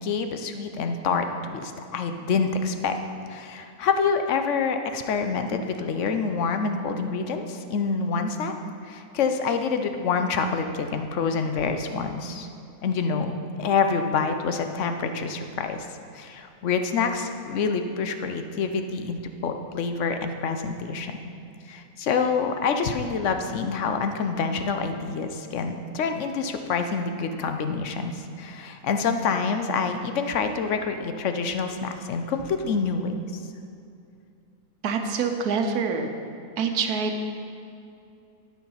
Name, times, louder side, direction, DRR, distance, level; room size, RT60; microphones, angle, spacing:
voice 1, 0.0-3.0 3.3-8.5 8.8-12.5 12.8-15.9 16.1-21.3 21.7-33.1, left 5 dB, 60° left, 7 dB, 0.9 m, -27 dB
voice 2, 34.8-36.1 36.6-37.2, right 5 dB, 90° right, 5 dB, 1.3 m, -26 dB
11.5 x 6.0 x 5.5 m, 2.6 s
omnidirectional pair, 1.6 m